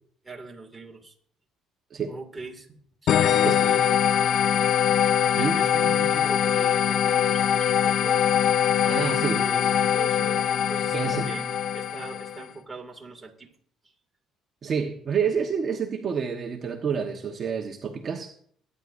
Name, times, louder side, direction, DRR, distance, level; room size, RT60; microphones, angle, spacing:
voice 1, 0.2-1.1 2.1-4.0 5.3-8.3 8.8-13.5, right 3 dB, 15° right, 1 dB, 2.4 m, -41 dB
sound 1, 3.1-12.4, left 9 dB, 60° left, 0.6 m, -22 dB
voice 2, 8.9-9.5 10.9-11.3 14.6-18.3, right 6 dB, 40° right, 2 dB, 1.2 m, -28 dB
23.5 x 9.9 x 2.6 m, 0.62 s
cardioid pair, 110°, 0 cm